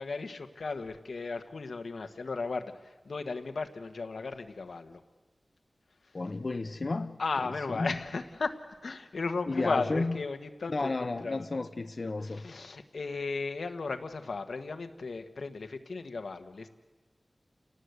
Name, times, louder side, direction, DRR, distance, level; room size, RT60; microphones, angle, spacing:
voice 1, 0.0-5.0 6.0-6.2 7.2-11.5 12.2-16.7, left 4 dB, 90° left, 6 dB, 1.5 m, -35 dB
voice 2, 6.1-7.2 7.7-8.0 9.5-10.2 10.7-12.5, left 3 dB, 50° left, 7 dB, 0.9 m, -32 dB
29.0 x 19.0 x 8.2 m, 1.3 s
wide cardioid pair, 85°, 0 cm